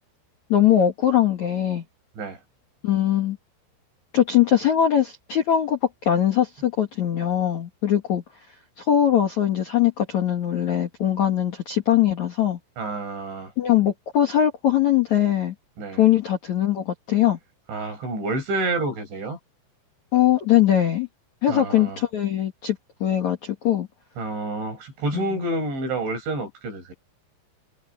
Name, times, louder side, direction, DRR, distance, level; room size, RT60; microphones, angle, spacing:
voice 1, 0.5-1.8 2.8-3.4 4.1-8.2 8.8-12.6 13.6-15.5 16.0-17.4 20.1-21.1 21.4-23.9 25.1-25.2, left 11 dB, 55° left, 2.2 m, -21 dB
voice 2, 12.8-13.5 15.8-16.0 17.7-19.4 21.5-22.0 24.2-26.9, right 2 dB, 60° right, 10.0 m, -28 dB
omnidirectional pair, 5.9 m